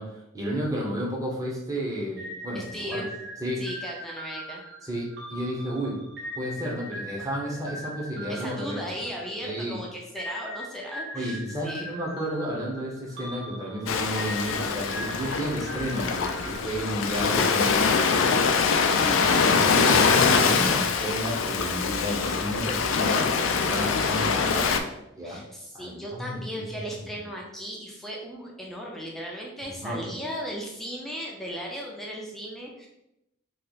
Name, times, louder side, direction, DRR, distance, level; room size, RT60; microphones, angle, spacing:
voice 1, 0.0-3.0 3.4-3.6 4.8-6.0 6.3-8.8 9.4-9.8 11.1-18.3 19.0-24.8 25.2-25.4 25.7-27.1 29.6-30.2, equal, 20° right, -3 dB, 0.8 m, -32 dB
sound 1, 2.2-9.6 10.2-17.4, equal, 60° right, 0.8 m, -41 dB
voice 2, 2.5-3.1 3.6-4.6 8.3-12.0 19.3-19.7 25.2-32.9, equal, ahead, -3 dB, 0.5 m, -36 dB
Ocean, 13.9-24.8, left 5 dB, 90° left, 0.4 m, -23 dB
3.1 x 2.4 x 3.9 m, 0.85 s
head